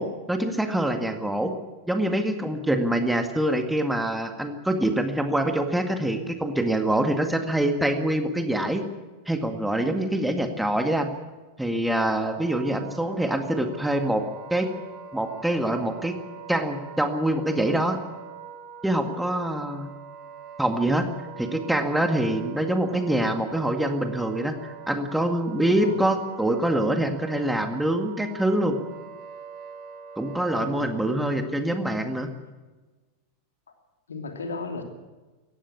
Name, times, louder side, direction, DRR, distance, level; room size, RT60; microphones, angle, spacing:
voice 1, 0.0-1.5 1.9-8.8 9.3-11.1 11.6-14.2 14.5-14.7 15.1-16.2 16.5-18.0 18.8-19.9 20.6-21.1 21.4-28.8 30.2-32.3, right 1 dB, 5° right, 6 dB, 1.9 m, -25 dB
Wind instrument woodwind instrument, 12.2-31.4, right 8 dB, 35° right, 3.0 m, -43 dB
voice 2, 34.1-34.8, left 4 dB, 70° left, 5 dB, 2.8 m, -35 dB
18.5 x 15.0 x 9.7 m, 1.2 s
figure-of-eight pair, 90°, 0 cm